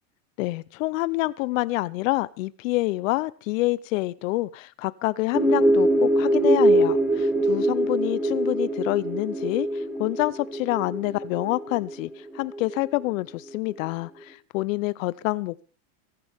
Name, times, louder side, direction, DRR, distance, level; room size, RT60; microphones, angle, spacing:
voice 1, 0.4-15.6, left 20 dB, 70° left, 19 dB, 0.6 m, -27 dB
sound 1, 5.3-13.0, right 1 dB, 5° right, 1.6 m, -23 dB
24.0 x 10.5 x 3.5 m, 0.35 s
supercardioid pair, 145°, 41 cm